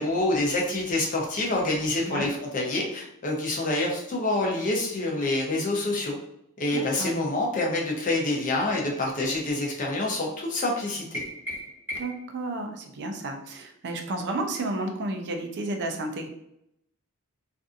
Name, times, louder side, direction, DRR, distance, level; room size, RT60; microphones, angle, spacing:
voice 1, 0.0-6.2 6.6-11.2, left 2 dB, 35° left, -1 dB, 0.6 m, -27 dB
voice 2, 6.7-7.1 11.9-16.3, right 2 dB, 50° right, 4 dB, 0.4 m, -32 dB
sound 1, 11.1-12.3, equal, 10° right, 0.8 m, -36 dB
2.6 x 2.4 x 2.4 m, 0.77 s
head